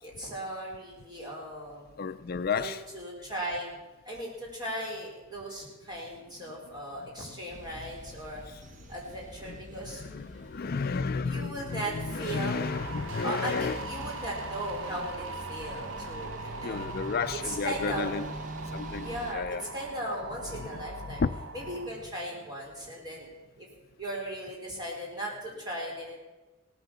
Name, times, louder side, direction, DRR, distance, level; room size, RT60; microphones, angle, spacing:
voice 1, 0.0-2.0 2.5-3.8 4.0-8.4 8.9-10.0 11.2-12.6 13.2-16.8 17.4-18.1 19.0-21.2 21.5-23.3 23.6-23.7 24.0-26.2, right 1 dB, 20° right, -3 dB, 4.3 m, -37 dB
voice 2, 2.0-2.8 8.4-8.6 9.4-14.1 16.6-18.3 18.7-19.6 20.5-21.3, left 5 dB, 45° left, 11 dB, 0.4 m, -33 dB
sound 1, 7.5-19.3, right 1 dB, 35° right, 1.1 m, -45 dB
sound 2, 11.6-21.9, right 3 dB, 70° right, 1.3 m, -41 dB
17.5 x 9.8 x 7.0 m, 1.1 s
head